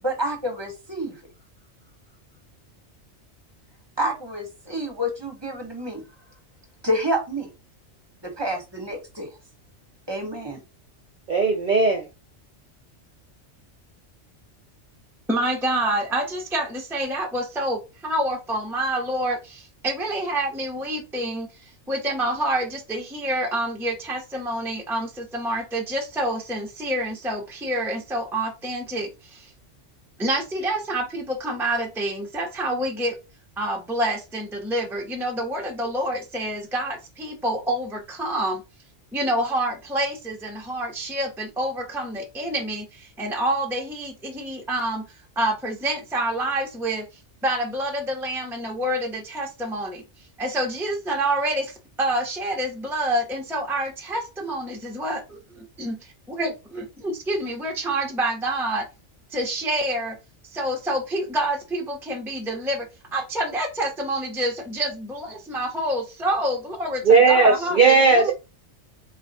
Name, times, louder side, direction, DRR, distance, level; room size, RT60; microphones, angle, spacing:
voice 1, 0.0-1.2 4.0-6.0 6.8-7.5 8.2-9.3 10.1-10.6, equal, 20° right, 1.3 m, -28 dB
voice 2, 11.3-12.1 67.0-68.3, right 4 dB, 45° right, 0.8 m, -16 dB
voice 3, 15.3-29.5 30.2-33.1 33.6-38.6 39.1-45.1 45.4-47.1 47.4-50.0 50.4-58.9 59.3-60.2 60.4-68.3, right 1 dB, ahead, 0.7 m, -27 dB
4.1 x 2.2 x 4.1 m
omnidirectional pair, 1.2 m